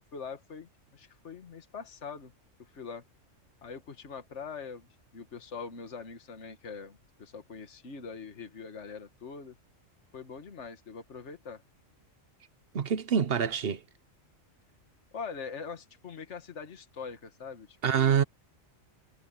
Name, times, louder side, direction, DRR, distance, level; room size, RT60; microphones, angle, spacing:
voice 1, 0.1-2.3 2.6-3.0 3.6-4.9 5.1-9.6 10.1-11.6 15.1-18.2, left 5 dB, 65° left, 1.9 m, -43 dB
voice 2, 12.7-13.8 17.8-18.2, right 7 dB, 50° right, 1.1 m, -26 dB
omnidirectional pair, 1.3 m